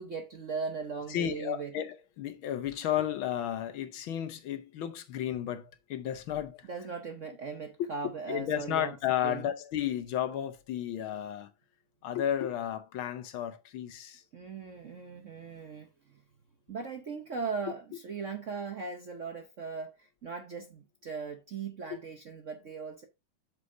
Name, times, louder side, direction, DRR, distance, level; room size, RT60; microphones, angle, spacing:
voice 1, 0.0-1.8 6.6-9.0 9.2-9.5 14.3-16.2 16.7-23.0, right 5 dB, 55° right, 0.9 m, -39 dB
voice 2, 1.1-6.7 7.8-7.9 8.3-11.5 12.0-14.2 21.9-22.0, left 10 dB, 70° left, 1.7 m, -33 dB
7.9 x 6.8 x 2.7 m
omnidirectional pair, 2.4 m